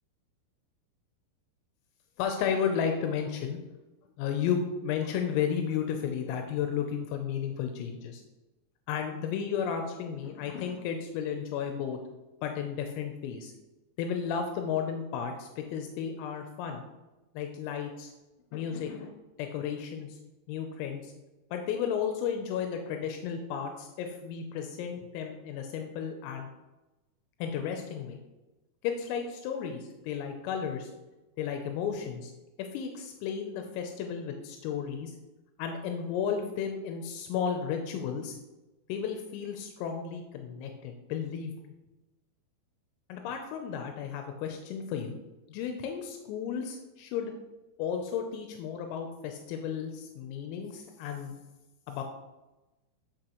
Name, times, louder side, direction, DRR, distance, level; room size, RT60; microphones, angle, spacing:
voice 1, 2.2-3.6 4.2-8.2 8.9-12.0 12.4-13.5 14.0-16.8 17.3-18.1 18.5-20.2 20.5-21.1 21.5-26.5 27.4-28.2 28.8-30.9 31.4-32.3 32.6-35.2 35.6-38.4 38.9-41.5 43.1-45.2 45.5-47.3 47.8-51.3 51.9-52.0, left 7 dB, 85° left, 4 dB, 3.3 m, -33 dB
10.0 x 6.2 x 3.0 m, 1.1 s
omnidirectional pair, 5.9 m